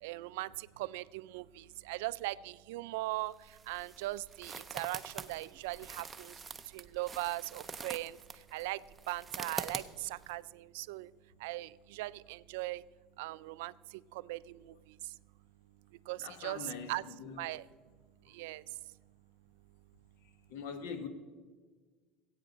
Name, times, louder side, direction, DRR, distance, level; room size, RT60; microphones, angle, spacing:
voice 1, 0.0-3.3 3.7-6.3 6.7-8.2 8.5-8.8 9.1-11.1 11.4-12.8 13.2-13.7 14.1-14.7 16.1-17.0 17.4-17.7 18.3-18.6, right 19 dB, 80° right, 0.3 m, -39 dB
sound 1, 3.1-10.3, right 5 dB, 15° right, 0.4 m, -45 dB
voice 2, 16.2-17.4 20.5-21.1, left 6 dB, 70° left, 1.2 m, -43 dB
19.5 x 8.6 x 4.0 m
cardioid pair, 175°, 0 cm